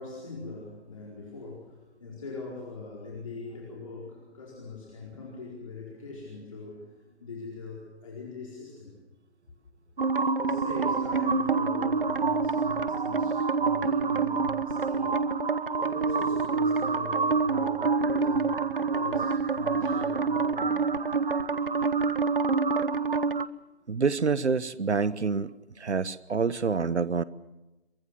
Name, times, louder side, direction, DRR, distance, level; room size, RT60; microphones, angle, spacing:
voice 1, 0.0-9.0 10.4-15.2 15.8-21.1 21.4-21.6, left 3 dB, 30° left, -3 dB, 4.6 m, -42 dB
sound 1, 10.0-23.5, right 4 dB, 55° right, 0.9 m, -27 dB
Keyboard (musical), 11.1-13.0, left 6 dB, 85° left, 0.7 m, -39 dB
voice 2, 23.9-27.2, right 5 dB, 85° right, 18 dB, 1.2 m, -27 dB
23.5 x 20.0 x 7.5 m, 1.0 s
figure-of-eight pair, 170°, 34 cm